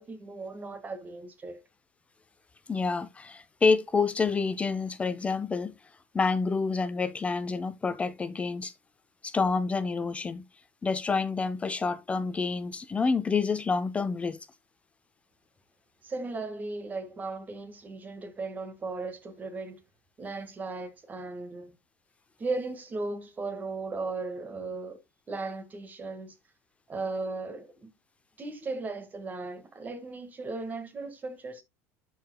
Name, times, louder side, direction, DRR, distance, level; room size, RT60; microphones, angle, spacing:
voice 1, 0.0-1.6 16.0-19.8 20.2-21.7 22.4-25.0 25.3-26.4 26.9-27.9 28.4-31.6, right 3 dB, 20° right, 1.8 m, -36 dB
voice 2, 2.7-5.7 6.1-8.7 9.2-10.4 10.8-14.4, left 4 dB, 15° left, 0.5 m, -28 dB
12.5 x 4.7 x 2.3 m
supercardioid pair, 130°, 8 cm